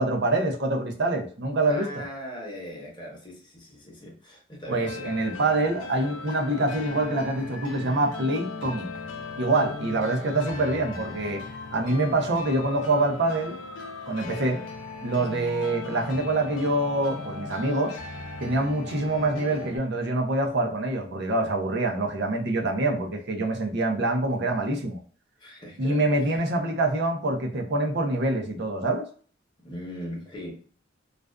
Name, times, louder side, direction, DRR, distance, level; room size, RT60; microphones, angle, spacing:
voice 1, 0.0-2.1 4.7-8.9 9.4-11.4 11.7-13.5 14.1-14.6 15.0-18.0 18.4-25.0 25.8-29.1, right 2 dB, 60° right, 0.6 m, -25 dB
voice 2, 1.7-5.1 23.7-23.8 25.4-26.4 29.6-30.6, equal, 25° left, 0.9 m, -40 dB
sound 1, 4.8-19.8, left 3 dB, 75° left, 0.6 m, -38 dB
2.4 x 2.3 x 2.2 m
head